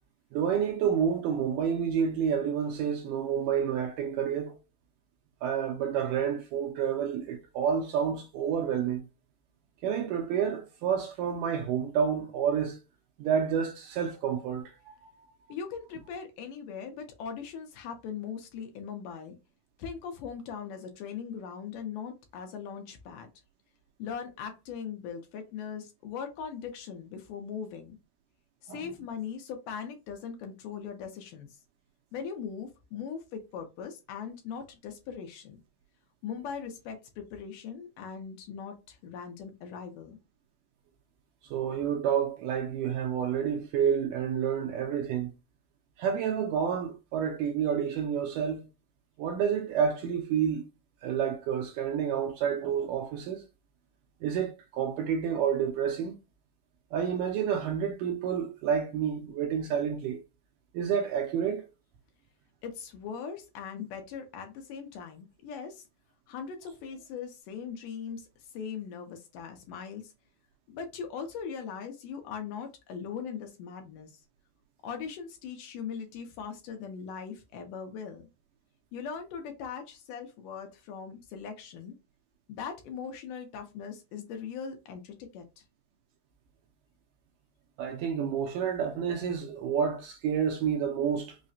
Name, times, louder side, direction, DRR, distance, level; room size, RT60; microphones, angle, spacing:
voice 1, 0.3-4.6 5.4-9.0 9.8-12.8 13.2-14.7 28.7-28.9 41.5-45.3 46.0-48.7 49.2-50.7 51.0-53.4 54.2-56.2 56.9-60.2 60.7-61.7 87.8-91.4, right 8 dB, 80° right, 2.0 m, -29 dB
voice 2, 15.5-19.4 19.8-23.3 24.0-28.0 28.6-31.6 32.1-35.6 36.2-40.2 62.6-65.8 66.3-70.1 70.7-74.2 74.8-78.3 78.9-82.0 82.5-85.6, left 7 dB, 75° left, 2.1 m, -40 dB
5.6 x 2.1 x 2.6 m
omnidirectional pair, 4.2 m